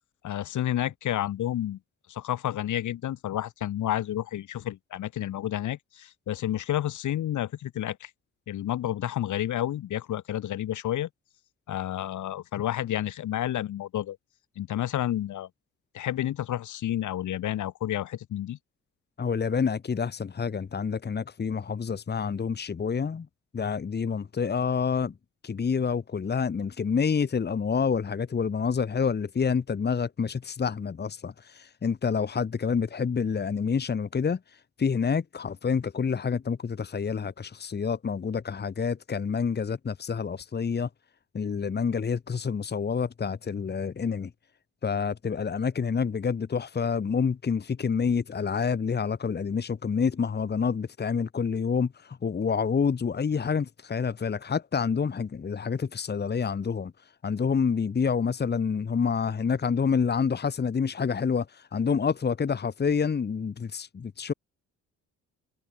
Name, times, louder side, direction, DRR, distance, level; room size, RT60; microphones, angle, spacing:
voice 1, 0.2-1.8 2.1-8.1 8.5-11.1 11.7-14.2 14.6-15.5 15.9-18.6, left 12 dB, 75° left, 6.4 m, -30 dB
voice 2, 19.2-23.3 23.5-25.1 25.4-34.4 34.8-40.9 41.3-44.3 44.8-56.9 57.2-64.3, left 6 dB, 35° left, 1.7 m, -28 dB
cardioid pair, 90°, 30 cm